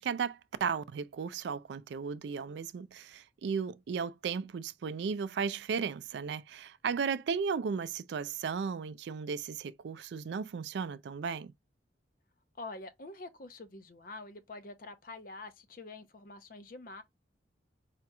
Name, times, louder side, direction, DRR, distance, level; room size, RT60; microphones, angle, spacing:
voice 1, 0.0-11.5, right 6 dB, 70° right, 0.3 m, -35 dB
voice 2, 12.6-17.0, left 2 dB, 50° left, 0.6 m, -46 dB
5.0 x 2.9 x 2.2 m
head